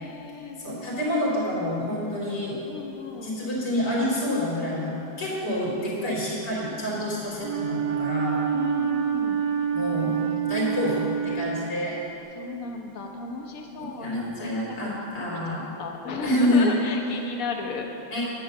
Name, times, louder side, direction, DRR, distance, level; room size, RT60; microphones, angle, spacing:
voice 1, 0.0-0.6 2.7-3.3 8.5-9.4 12.3-14.5 14.8-15.0 15.5-17.9, left 4 dB, 55° left, 2 dB, 1.5 m, -35 dB
voice 2, 0.6-2.6 3.2-8.4 9.7-12.0 13.8-15.6 16.2-16.7 18.1-18.2, left 1 dB, 80° left, -6 dB, 3.6 m, -27 dB
Wind instrument woodwind instrument, 7.4-12.2, right 7 dB, 75° right, 1.3 m, -27 dB
10.5 x 8.5 x 6.6 m, 2.8 s
omnidirectional pair, 1.8 m